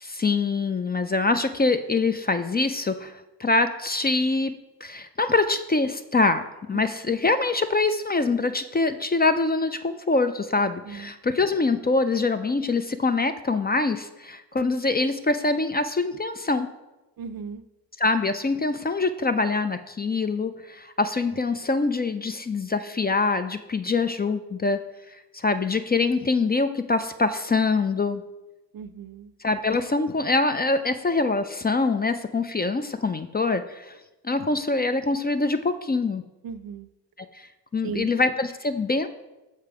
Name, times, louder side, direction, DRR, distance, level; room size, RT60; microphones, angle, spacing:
voice 1, 0.0-4.6 4.8-16.7 18.0-24.8 25.3-28.2 29.4-33.9 34.2-36.2 37.3-37.5 37.7-39.1, left 3 dB, 25° left, 10 dB, 0.4 m, -24 dB
voice 2, 17.2-17.6 28.7-29.3 36.4-36.9 37.8-38.1, right 6 dB, 60° right, 13 dB, 0.5 m, -36 dB
6.6 x 5.1 x 4.8 m, 1.0 s
cardioid pair, 75°, 40 cm